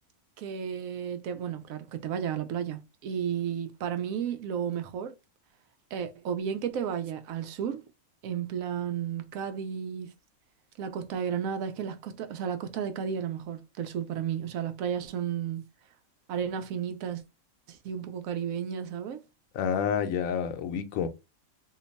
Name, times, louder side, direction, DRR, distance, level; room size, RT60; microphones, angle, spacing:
voice 1, 0.4-5.1 5.9-7.8 8.2-10.1 10.8-15.6 16.3-17.2 17.7-19.2, right 8 dB, 80° right, 1.0 m, -33 dB
voice 2, 19.5-21.1, left 7 dB, 75° left, 1.0 m, -29 dB
2.9 x 2.2 x 3.9 m
omnidirectional pair, 1.4 m